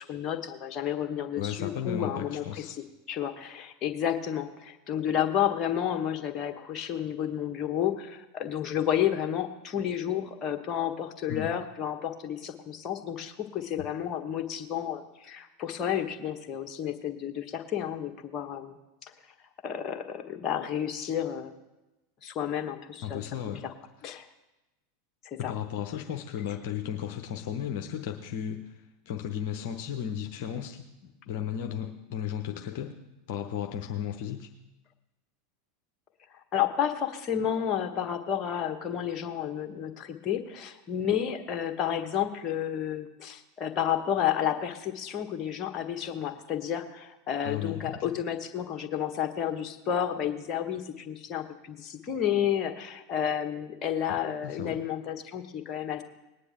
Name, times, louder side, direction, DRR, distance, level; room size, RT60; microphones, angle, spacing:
voice 1, 0.0-2.8 3.1-19.1 19.6-21.5 22.2-23.2 23.6-23.7 24.0-24.3 25.2-25.5 36.5-56.0, left 9 dB, 35° left, 6 dB, 1.4 m, -31 dB
voice 2, 1.4-2.8 11.3-11.5 23.0-23.7 25.4-33.0 33.3-34.5 47.4-48.1 54.1-54.8, left 9 dB, 55° left, 4 dB, 0.9 m, -35 dB
19.5 x 9.7 x 3.7 m, 1.0 s
figure-of-eight pair, 85°, 0 cm